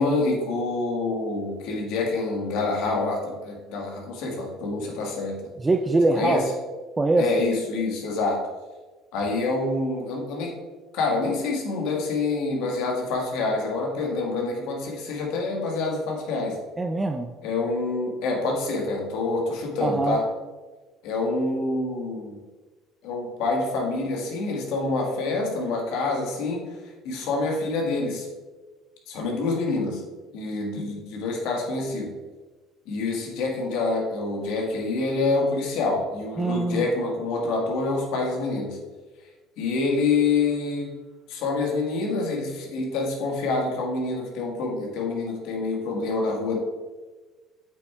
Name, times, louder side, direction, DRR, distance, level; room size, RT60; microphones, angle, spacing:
voice 1, 0.0-5.4 6.1-6.5 7.2-8.4 9.1-10.5 10.9-16.6 17.4-20.2 21.0-22.4 23.0-26.8 27.0-28.3 29.1-30.0 30.3-32.1 32.9-38.8 39.6-40.9 41.3-46.6, left 3 dB, 80° left, 0 dB, 1.5 m, -26 dB
voice 2, 5.6-6.4 7.0-7.3 16.8-17.3 19.8-20.2 36.4-36.8, right 2 dB, 20° right, 5 dB, 0.4 m, -22 dB
8.1 x 5.6 x 2.3 m, 1.3 s
supercardioid pair, 95°, 0 cm